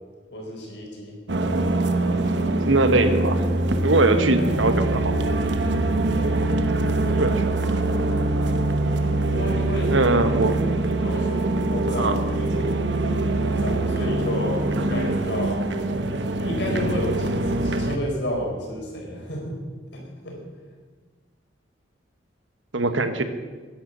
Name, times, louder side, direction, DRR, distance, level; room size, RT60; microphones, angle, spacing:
voice 1, 0.3-1.2 6.1-6.6 7.0-7.3 9.3-10.0 11.0-15.6 16.4-19.6 19.9-20.4 22.9-23.0, equal, 65° left, -1 dB, 4.1 m, -31 dB
sound 1, 1.3-18.0, right 2 dB, 70° right, 1.0 m, -23 dB
voice 2, 2.6-3.4 3.8-5.1 7.1-7.4 9.9-10.5 12.0-12.2 22.7-23.2, right 2 dB, 90° right, 9 dB, 1.2 m, -21 dB
10.5 x 9.9 x 7.8 m, 1.4 s
head